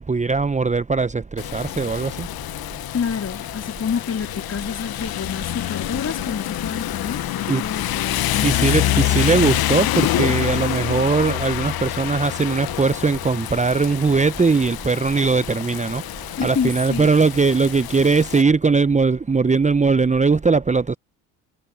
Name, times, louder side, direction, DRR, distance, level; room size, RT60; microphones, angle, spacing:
voice 1, 0.1-1.2 1.5-2.3 7.5-7.6 8.4-16.0 16.4-21.0, right 4 dB, 15° right, 1.0 m, -20 dB
Rain, 1.4-18.4, left 14 dB, 55° left, 1.5 m, -26 dB
voice 2, 2.9-9.6 16.4-17.1, left 7 dB, 35° left, 4.4 m, -28 dB
hypercardioid pair, 50°, 44 cm